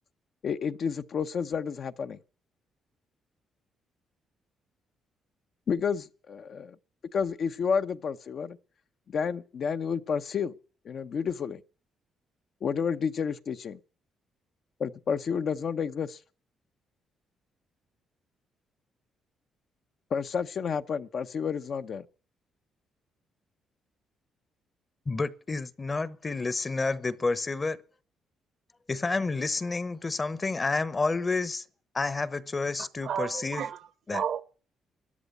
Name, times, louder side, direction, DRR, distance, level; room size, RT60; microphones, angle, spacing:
voice 1, 0.4-2.2 5.7-6.8 7.1-8.6 9.1-10.5 10.8-11.6 12.6-13.8 14.8-16.2 20.1-22.1, left 6 dB, 55° left, 0.8 m, -30 dB
voice 2, 25.1-27.8 28.9-31.6 31.9-33.6 34.1-34.2, left 3 dB, 30° left, 1.0 m, -30 dB
voice 3, 32.8-34.4, right 8 dB, 65° right, 1.0 m, -33 dB
13.5 x 11.0 x 8.3 m
cardioid pair, 90°, 0 cm